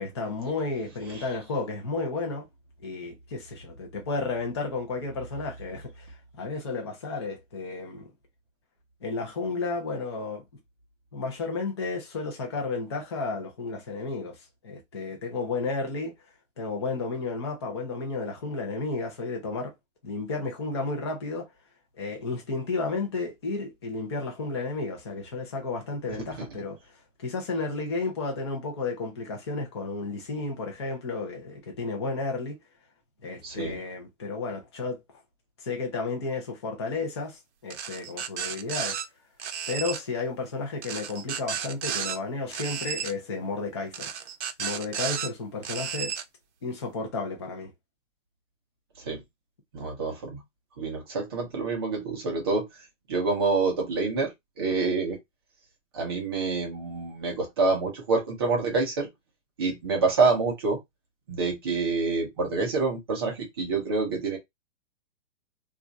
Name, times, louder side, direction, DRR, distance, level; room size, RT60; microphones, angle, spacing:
voice 1, 0.0-2.5 2.8-6.1 6.4-8.1 9.0-10.4 11.1-14.4 14.6-16.1 16.6-19.7 20.0-21.5 22.0-26.8 27.2-32.6 33.2-35.0 35.6-39.0 39.7-44.1 44.6-46.1 46.6-47.7, left 3 dB, 20° left, 0.5 m, -32 dB
voice 2, 33.4-33.8 49.0-49.2 49.7-50.4 50.8-52.7 53.1-54.3 54.6-55.2 55.9-59.1 59.6-60.8 61.3-64.4, right 4 dB, 20° right, 0.6 m, -27 dB
sound 1, 37.7-39.0 39.4-40.0 40.8-42.2 42.5-43.1 43.9-45.3 45.6-46.2, right 8 dB, 65° right, 0.7 m, -33 dB
2.4 x 2.3 x 3.9 m
hypercardioid pair, 175°, 37 cm